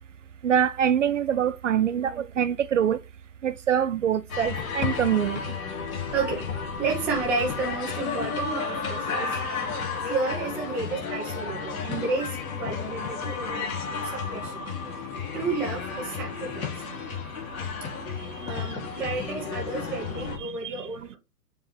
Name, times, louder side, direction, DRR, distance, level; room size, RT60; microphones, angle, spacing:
voice 1, 0.4-3.0 3.4-5.4 20.4-20.9, right 9 dB, 50° right, 0.6 m, -24 dB
sound 1, 4.3-20.4, left 5 dB, 55° left, 3.0 m, -32 dB
voice 2, 6.1-6.5 6.8-9.4 10.0-13.7 14.0-14.7 15.3-16.7 18.5-21.2, right 4 dB, 5° right, 0.5 m, -31 dB
7.3 x 3.5 x 4.2 m
hypercardioid pair, 140°, 49 cm